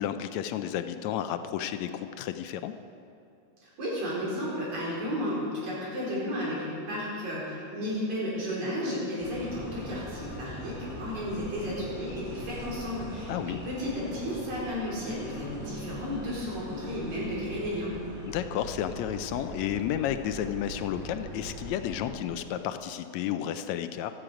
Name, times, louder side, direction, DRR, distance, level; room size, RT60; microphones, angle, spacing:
voice 1, 0.0-2.7 13.3-13.6 18.3-24.1, left 10 dB, 80° left, 9 dB, 1.8 m, -32 dB
voice 2, 3.6-17.9, equal, 80° right, -6 dB, 5.7 m, -33 dB
sound 1, 9.2-22.1, right 1 dB, ahead, 3.6 m, -41 dB
15.5 x 13.0 x 5.0 m, 2.6 s
omnidirectional pair, 3.3 m